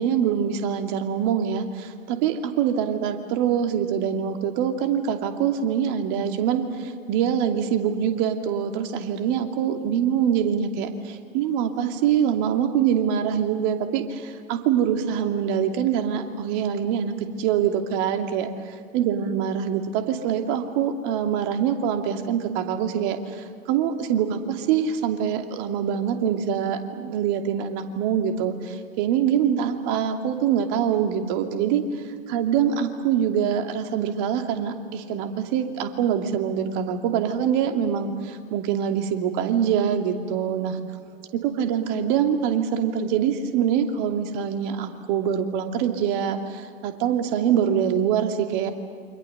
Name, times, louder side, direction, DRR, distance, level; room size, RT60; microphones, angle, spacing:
voice 1, 0.0-18.5 18.9-40.8 41.3-48.7, right 8 dB, 50° right, 5 dB, 2.7 m, -24 dB
28.5 x 26.0 x 6.8 m, 2.3 s
figure-of-eight pair, 85°, 29 cm